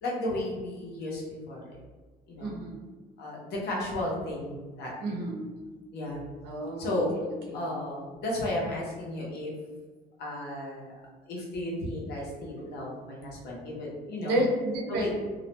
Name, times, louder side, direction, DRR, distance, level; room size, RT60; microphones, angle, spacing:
voice 1, 0.0-1.7 2.3-2.6 3.2-5.1 5.9-6.2 6.8-7.1 7.5-9.5 10.2-11.0 11.3-14.4 14.9-15.1, left 1 dB, 75° left, -3 dB, 0.8 m, -34 dB
voice 2, 2.4-2.8 5.0-5.4 6.4-7.7 14.3-15.1, right 1 dB, 85° right, -2 dB, 0.7 m, -31 dB
2.4 x 2.1 x 2.9 m, 1.4 s
cardioid pair, 110°, 17 cm